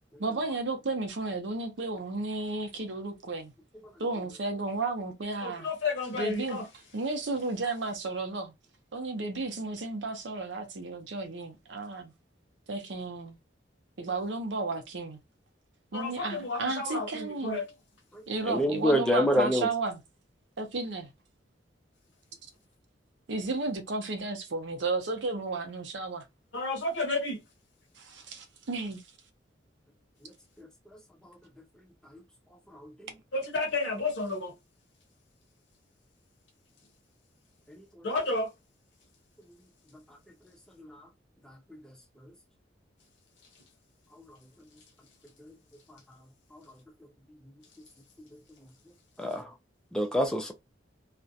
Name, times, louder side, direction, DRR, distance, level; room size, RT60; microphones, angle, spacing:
voice 1, 0.2-3.5 4.0-5.7 6.1-6.6 6.9-8.5 8.9-12.1 12.7-13.4 14.0-15.2 15.9-17.6 18.3-20.0 20.6-21.1 23.3-26.2 28.0-29.0, right 3 dB, 75° right, 0.6 m, -33 dB
voice 2, 5.4-6.7 15.9-17.7 26.5-27.4 33.3-34.5 38.0-38.5, left 3 dB, 80° left, 0.7 m, -31 dB
voice 3, 18.1-19.7 30.6-30.7 31.2-31.4 32.7-33.1 37.8-38.1 40.8-41.0 44.2-44.3 45.4-45.5 46.5-46.6 49.2-49.5 49.9-50.5, equal, 5° left, 0.4 m, -28 dB
2.4 x 2.1 x 2.6 m
head